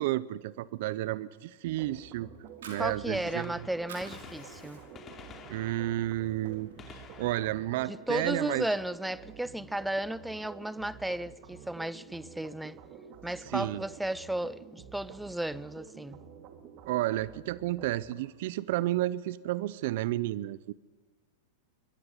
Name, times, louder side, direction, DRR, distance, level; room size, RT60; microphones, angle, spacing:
voice 1, 0.0-2.3 2.7-3.7 5.5-8.7 13.5-13.8 16.9-20.7, right 15 dB, 65° right, 0.6 m, -31 dB
sound 1, 1.6-18.2, right 7 dB, 45° right, 2.5 m, -50 dB
Fire, 2.3-3.5 3.8-5.1 5.5-5.7 6.1-7.0, right 4 dB, 80° right, 5.4 m, -49 dB
voice 2, 2.8-4.8 7.8-12.8 13.2-16.2, right 1 dB, 5° right, 0.6 m, -34 dB
Gunshot gunfire, 3.0-8.9 10.8-10.9 11.9-12.0 13.6-13.7 15.1-15.2 15.4-15.5, left 6 dB, 25° left, 2.8 m, -52 dB
21.0 x 13.5 x 9.7 m
hypercardioid pair, 120°, 0 cm